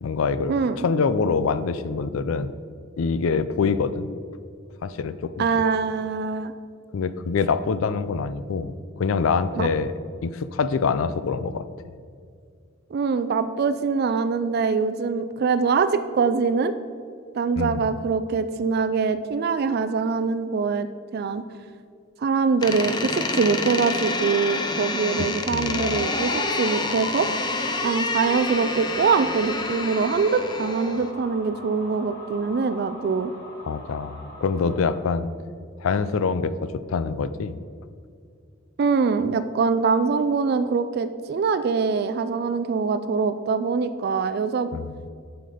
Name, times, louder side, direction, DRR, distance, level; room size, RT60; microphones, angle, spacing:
voice 1, 0.0-2.5 3.0-4.1 4.8-5.5 6.9-9.9 10.2-11.6 17.6-17.9 25.2-26.0 33.7-35.3 35.8-37.6 44.7-45.1, left 5 dB, 85° left, 13 dB, 0.4 m, -25 dB
voice 2, 5.4-6.5 9.5-9.7 12.9-16.8 17.3-20.9 21.1-21.4 22.2-27.3 27.8-33.3 38.8-44.7, right 5 dB, 50° right, 11 dB, 0.3 m, -23 dB
Door, 22.6-31.1, left 3 dB, 20° left, 0.6 m, -28 dB
sound 1, 25.7-35.0, left 1 dB, 50° left, 2.1 m, -38 dB
7.6 x 7.0 x 5.0 m, 2.2 s
head